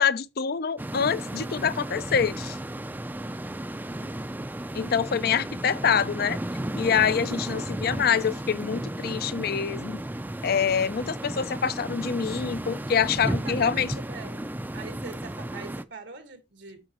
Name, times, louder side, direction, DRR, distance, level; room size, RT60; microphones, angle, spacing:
voice 1, 0.0-2.6 4.7-6.4 6.8-10.0 10.4-13.9, left 7 dB, 55° left, 0.5 m, -25 dB
sound 1, 0.8-15.8, right 1 dB, 10° right, 0.4 m, -34 dB
voice 2, 13.2-16.9, right 4 dB, 85° right, 1.8 m, -43 dB
8.8 x 6.2 x 3.0 m
head